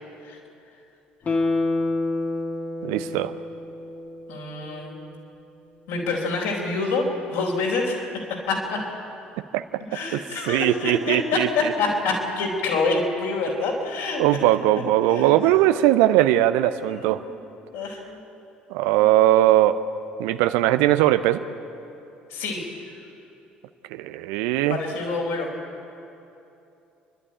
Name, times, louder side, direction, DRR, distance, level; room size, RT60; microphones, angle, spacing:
Guitar, 1.2-4.5 4.9-5.0, left 2 dB, 35° left, 2.2 m, -27 dB
voice 1, 2.8-3.3 9.5-9.6 10.1-10.2 10.5-11.5 14.2-17.2 18.7-19.8 20.2-21.4 23.9-24.8, right 14 dB, 60° right, 11 dB, 0.7 m, -20 dB
voice 2, 4.3-5.0 5.9-8.8 9.8-14.2 15.0-15.5 16.8-17.4 17.7-18.2 19.0-19.1 22.3-22.9 24.7-25.5, left 3 dB, 60° left, -1 dB, 4.1 m, -27 dB
28.5 x 12.0 x 8.9 m, 2.8 s
figure-of-eight pair, 55°, 5 cm